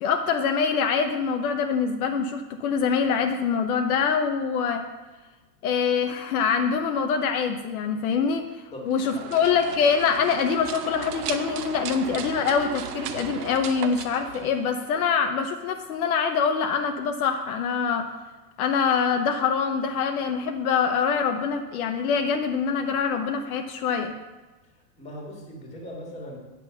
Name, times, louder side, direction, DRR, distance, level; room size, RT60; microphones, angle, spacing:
voice 1, 0.0-4.8 5.6-18.1 18.6-24.1, left 6 dB, 65° left, 5 dB, 0.9 m, -24 dB
voice 2, 8.7-9.3 25.0-26.4, left 1 dB, 15° left, -1 dB, 2.0 m, -39 dB
sound 1, 8.9-15.1, right 9 dB, 75° right, 0.9 m, -36 dB
9.3 x 6.1 x 6.9 m, 1.2 s
supercardioid pair, 165°, 48 cm